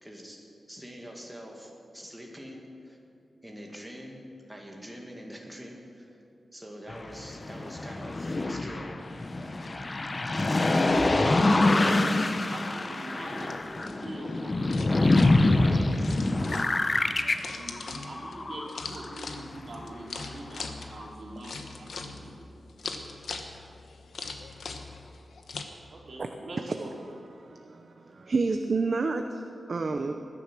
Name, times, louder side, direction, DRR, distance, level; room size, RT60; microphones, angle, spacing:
voice 1, 0.0-3.0 3.4-4.2 4.5-6.2 6.5-9.1 9.3-9.6, equal, 5° right, -1 dB, 1.8 m, -45 dB
sound 1, 6.9-19.1 19.7-19.8, left 2 dB, 30° left, 0.7 m, -25 dB
sound 2, 9.0-25.6, left 4 dB, 85° left, 1.2 m, -43 dB
voice 2, 11.1-16.2 17.5-22.5 25.9-26.9, right 1 dB, 60° right, -2 dB, 3.1 m, -42 dB
voice 3, 27.4-30.1, right 3 dB, 45° right, 6 dB, 0.6 m, -30 dB
20.5 x 10.0 x 6.1 m, 2.6 s
wide cardioid pair, 160°, 0 cm